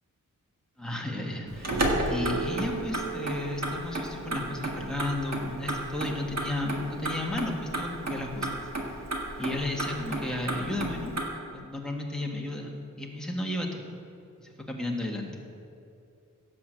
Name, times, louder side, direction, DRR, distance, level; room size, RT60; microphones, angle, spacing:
voice 1, 0.8-8.7 9.4-11.1 11.5-12.7 13.0-13.8 14.4-15.3, left 2 dB, ahead, -1 dB, 1.6 m, -33 dB
Motor vehicle (road), 1.5-11.3, right 1 dB, 55° right, 1.8 m, -33 dB
Guitar, 1.7-5.6, right 4 dB, 85° right, 3.2 m, -39 dB
16.5 x 6.2 x 7.5 m, 2.6 s
wide cardioid pair, 145°, 32 cm